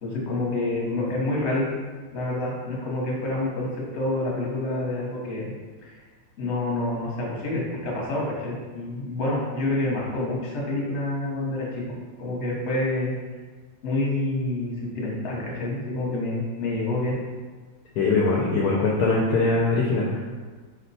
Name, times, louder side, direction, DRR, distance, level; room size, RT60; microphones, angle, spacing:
voice 1, 0.0-1.6 2.1-5.4 5.8-5.9 6.4-11.8 12.2-13.1 13.8-17.1, left 2 dB, 45° left, -4 dB, 1.1 m, -28 dB
voice 2, 18.0-20.2, left 3 dB, 70° left, -4 dB, 1.0 m, -22 dB
4.6 x 2.2 x 4.0 m, 1.4 s
omnidirectional pair, 1.9 m